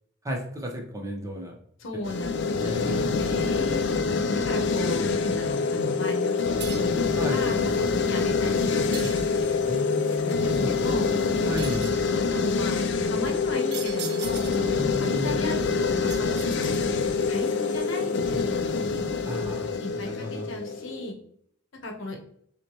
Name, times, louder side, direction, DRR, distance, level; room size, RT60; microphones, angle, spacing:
voice 1, 0.2-1.6 2.5-3.1 7.2-7.4 9.7-10.7 11.5-11.9 14.8-15.4 19.2-20.5, left 1 dB, 15° right, 0 dB, 0.6 m, -34 dB
voice 2, 1.8-3.9 4.5-9.4 10.0-11.2 12.0-12.8 13.1-14.6 15.0-18.6 19.7-21.2 21.8-22.2, left 1 dB, 75° left, 2 dB, 0.8 m, -35 dB
sound 1, 2.0-21.1, left 4 dB, 60° left, 0.3 m, -26 dB
sound 2, 6.6-7.1 8.9-9.7 11.6-12.1 13.7-14.8 16.1-17.1, right 9 dB, 55° right, 0.4 m, -39 dB
6.0 x 2.1 x 2.9 m, 0.65 s
head